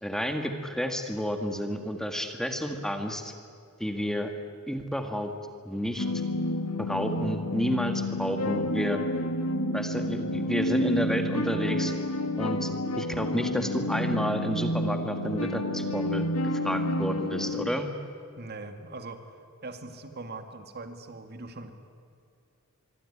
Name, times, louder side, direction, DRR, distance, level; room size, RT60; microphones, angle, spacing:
voice 1, 0.0-3.3 3.8-4.3 4.7-5.3 5.6-6.1 6.8-9.0 9.7-11.9 12.4-12.7 13.0-16.2 16.6-17.9, equal, ahead, 5 dB, 1.6 m, -30 dB
sound 1, 6.0-17.7, left 1 dB, 90° left, 1.5 m, -30 dB
voice 2, 18.4-19.2 19.6-21.7, right 3 dB, 50° right, 7 dB, 2.2 m, -41 dB
25.0 x 24.0 x 9.9 m, 2.3 s
head